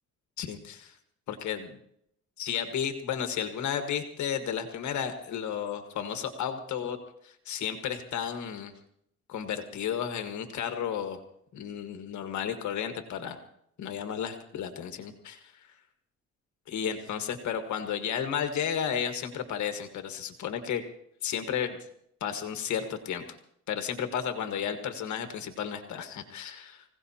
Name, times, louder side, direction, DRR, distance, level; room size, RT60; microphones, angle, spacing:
voice 1, 0.4-0.9 1.3-1.8 2.4-7.0 7.2-8.7 9.3-11.2 11.5-13.4 13.8-15.4 16.7-20.8 21.2-21.8 22.2-23.2 23.7-26.8, left 8 dB, 70° left, 7 dB, 1.5 m, -33 dB
25.0 x 16.5 x 2.8 m, 0.73 s
cardioid pair, 90°, 30 cm